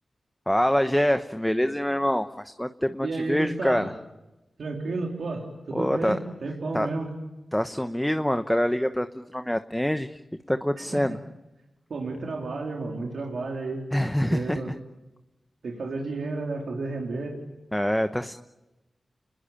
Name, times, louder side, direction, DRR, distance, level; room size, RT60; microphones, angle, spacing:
voice 1, 0.5-3.9 5.7-6.2 6.7-6.9 7.5-9.1 9.3-10.2 10.5-11.2 13.9-14.6 17.7-18.3, equal, 5° left, 8 dB, 1.1 m, -25 dB
voice 2, 3.0-3.9 4.6-7.1 10.8-11.0 11.9-13.8 14.3-14.7 15.6-17.4, right 3 dB, 80° right, 0 dB, 3.9 m, -32 dB
29.5 x 20.5 x 8.7 m, 1.0 s
cardioid pair, 60°, 0 cm